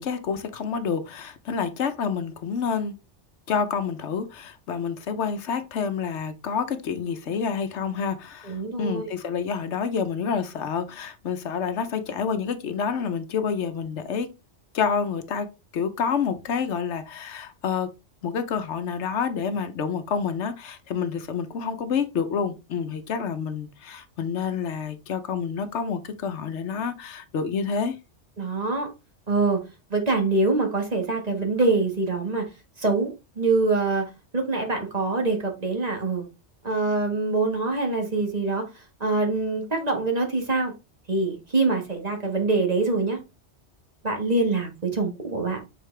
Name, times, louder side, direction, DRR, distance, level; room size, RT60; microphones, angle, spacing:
voice 1, 0.0-2.9 3.5-14.3 14.7-17.9 18.2-28.0, left 6 dB, 75° left, 1.1 m, -28 dB
voice 2, 8.4-9.1 28.4-28.9 29.3-29.6 29.9-32.5 32.8-33.1 33.4-36.3 36.6-38.6 39.0-40.7 41.1-43.2 44.0-45.6, right 3 dB, 35° right, 1.6 m, -24 dB
6.5 x 4.4 x 3.3 m
omnidirectional pair, 1.2 m